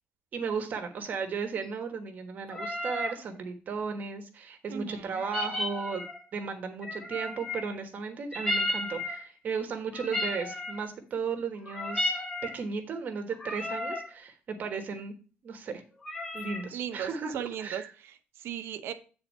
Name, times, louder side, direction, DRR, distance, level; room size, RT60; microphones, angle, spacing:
voice 1, 0.3-6.0 6.3-15.1 15.4-15.8 16.3-17.9, right 5 dB, 40° right, 6 dB, 1.2 m, -35 dB
sound 1, 2.5-3.2 5.2-6.2 6.8-7.7 8.3-9.3 9.9-10.9 11.6-12.6 13.3-14.1 16.0-16.7, left 1 dB, 10° left, 1.3 m, -33 dB
voice 2, 4.7-5.2 16.7-18.9, right 9 dB, 65° right, 9 dB, 0.9 m, -37 dB
8.7 x 4.0 x 5.4 m, 0.36 s
cardioid pair, 180°, 4 cm